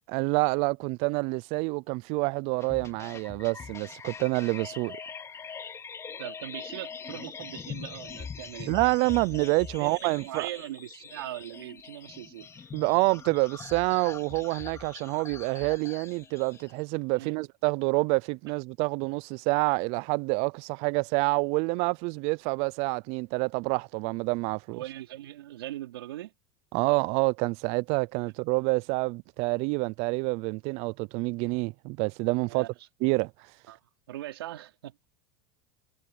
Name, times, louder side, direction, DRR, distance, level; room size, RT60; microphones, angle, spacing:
voice 1, 0.1-5.0 8.7-10.5 12.7-24.8 26.7-32.7 33.0-33.3, right 28 dB, 55° right, 0.5 m, -27 dB
sound 1, 2.6-16.7, left 6 dB, 25° left, 2.8 m, -43 dB
voice 2, 6.2-8.7 9.8-12.5 17.1-17.3 24.7-26.3 32.5-32.7 33.7-33.8 34.1-35.1, right 14 dB, 85° right, 3.8 m, -40 dB
hypercardioid pair, 105°, 12 cm